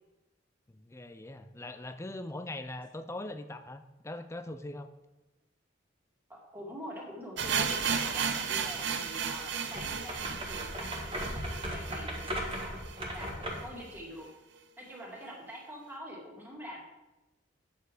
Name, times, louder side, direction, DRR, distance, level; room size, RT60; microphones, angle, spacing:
voice 1, 0.7-4.9, left 1 dB, 15° left, 10 dB, 0.4 m, -41 dB
voice 2, 6.3-12.8 13.1-14.3 14.8-16.8, equal, 10° right, -3 dB, 2.2 m, -45 dB
sound 1, 7.4-13.3 13.5-13.6 13.9-14.0 14.6-14.7, right 6 dB, 60° right, 0.8 m, -34 dB
sound 2, 9.7-13.8, equal, 25° right, 1.6 m, -37 dB
9.0 x 7.0 x 4.9 m, 1.0 s
head